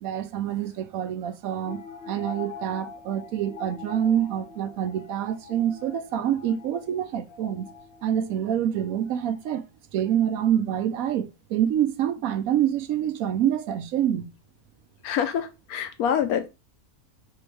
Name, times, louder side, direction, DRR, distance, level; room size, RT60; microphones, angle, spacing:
voice 1, 0.0-7.7 8.0-9.6 9.9-14.3, right 10 dB, 75° right, 1.0 m, -26 dB
sound 1, 1.7-9.5, left 6 dB, 50° left, 0.9 m, -44 dB
voice 2, 15.0-16.5, left 8 dB, 80° left, 1.2 m, -26 dB
3.5 x 3.3 x 4.5 m
omnidirectional pair, 1.5 m